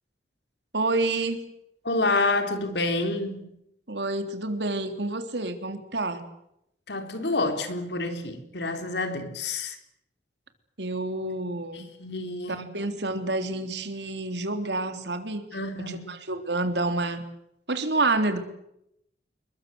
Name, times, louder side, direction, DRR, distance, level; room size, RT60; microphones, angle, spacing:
voice 1, 0.7-1.5 3.9-6.2 10.8-11.9 12.5-15.4 15.9-17.2 17.7-18.4, right 2 dB, 80° right, 3.5 m, -28 dB
voice 2, 1.8-3.6 6.9-9.8 11.7-12.7 15.5-16.2, left 2 dB, 75° left, 4.1 m, -28 dB
28.5 x 22.5 x 8.0 m
head